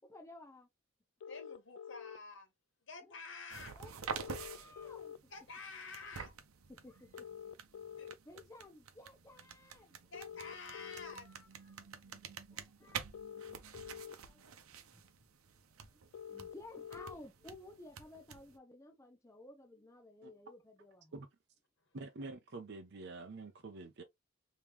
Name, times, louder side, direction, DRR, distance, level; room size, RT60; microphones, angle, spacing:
voice 1, 0.0-0.7 3.0-3.1 3.7-3.9 4.2-5.3 6.7-7.3 7.8-7.9 8.2-10.0 11.7-11.9 12.5-13.4 14.1-15.0 16.1-21.1, left 2 dB, 15° left, 0.7 m, -55 dB
sound 1, 1.2-2.2 4.2-5.2 7.1-8.2 10.1-11.2 13.1-14.2 16.1-17.2, left 8 dB, 85° left, 0.3 m, -47 dB
voice 2, 1.3-2.5 2.8-3.8 5.3-6.4 8.0-8.1 10.1-11.3 12.0-12.4 21.8-22.0, left 4 dB, 60° left, 1.4 m, -50 dB
sound 2, 3.5-18.6, right 6 dB, 85° right, 0.7 m, -49 dB
voice 3, 21.9-24.0, right 3 dB, 50° right, 0.6 m, -47 dB
3.5 x 3.0 x 3.0 m
head